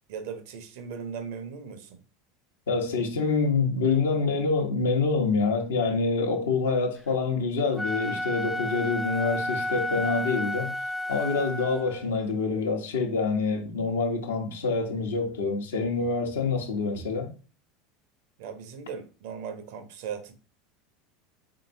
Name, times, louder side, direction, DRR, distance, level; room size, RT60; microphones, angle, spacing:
voice 1, 0.1-2.0 18.4-20.3, right 6 dB, 65° right, 0.7 m, -38 dB
voice 2, 2.7-10.7 11.1-17.3, left 4 dB, 75° left, 0.9 m, -26 dB
Wind instrument woodwind instrument, 7.6-12.1, left 1 dB, 5° right, 0.4 m, -31 dB
3.7 x 3.6 x 2.6 m
hypercardioid pair, 80°, 0 cm